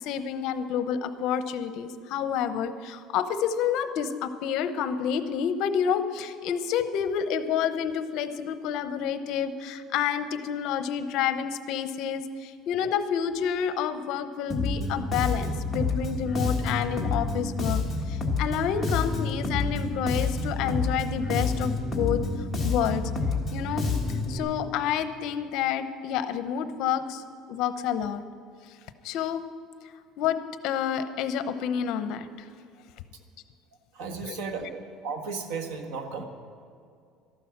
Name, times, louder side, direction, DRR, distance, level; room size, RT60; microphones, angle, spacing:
voice 1, 0.0-22.2 22.6-23.0 23.5-23.9 24.3-27.2 27.5-28.2 29.0-29.4 30.2-32.5 34.2-34.7, left 8 dB, 60° left, 11 dB, 0.8 m, -29 dB
Bass guitar, 14.5-24.4, left 3 dB, 5° left, 1.7 m, -28 dB
voice 2, 33.9-36.2, right 5 dB, 80° right, 5 dB, 1.5 m, -35 dB
13.5 x 11.5 x 6.0 m, 2.3 s
cardioid pair, 160°, 0 cm